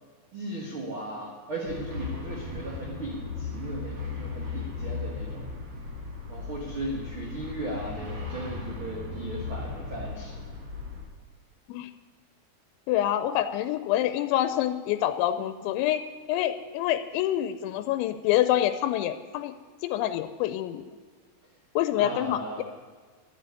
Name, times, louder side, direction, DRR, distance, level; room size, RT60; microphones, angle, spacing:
voice 1, 0.3-5.5 6.3-10.4 21.9-22.6, right 1 dB, 80° right, -2 dB, 1.1 m, -37 dB
sound 1, 1.6-11.0, left 4 dB, 35° right, 2.4 m, -37 dB
voice 2, 12.9-16.0 16.3-19.5 19.8-20.8 21.8-22.6, left 12 dB, 85° left, 11 dB, 2.9 m, -26 dB
12.0 x 7.6 x 9.6 m, 1.5 s
omnidirectional pair, 5.2 m